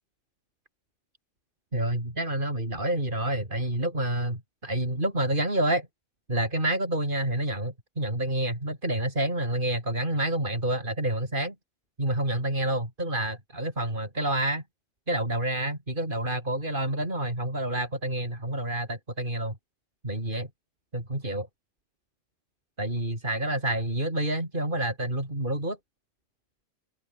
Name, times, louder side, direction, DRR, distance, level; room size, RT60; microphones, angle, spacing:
voice 1, 1.7-5.9 6.3-11.5 12.0-14.6 15.1-19.6 20.0-20.5 20.9-21.5 22.8-25.8, right 1 dB, 45° right, 7.3 m, -28 dB
open air
omnidirectional pair, 1.2 m